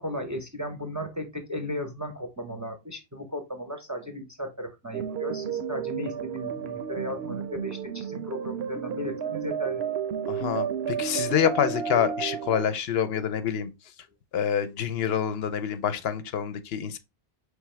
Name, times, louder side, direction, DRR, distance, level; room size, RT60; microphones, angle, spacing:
voice 1, 0.0-9.8, equal, 20° right, 0.5 m, -35 dB
sound 1, 4.9-12.6, right 8 dB, 75° right, 0.8 m, -32 dB
voice 2, 10.3-13.7 14.3-17.0, left 8 dB, 70° left, 0.8 m, -27 dB
4.7 x 3.4 x 3.1 m
omnidirectional pair, 1.1 m